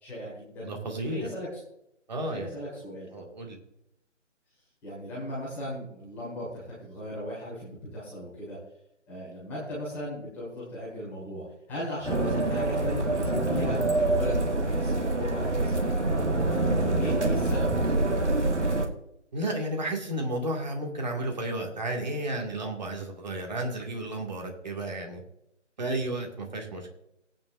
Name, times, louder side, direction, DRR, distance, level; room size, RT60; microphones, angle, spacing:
voice 1, 0.0-0.7 1.0-1.5 2.3-3.3 4.8-8.6 9.1-13.8 14.1-18.8, left 1 dB, 5° left, -9 dB, 2.1 m, -37 dB
voice 2, 0.6-1.3 2.1-2.6 3.1-3.6 19.3-25.2 25.8-27.0, right 1 dB, 35° right, 1 dB, 2.2 m, -32 dB
sound 1, 12.0-18.9, right 2 dB, 65° right, 1.9 m, -26 dB
16.5 x 8.9 x 2.6 m, 0.81 s
figure-of-eight pair, 155°, 38 cm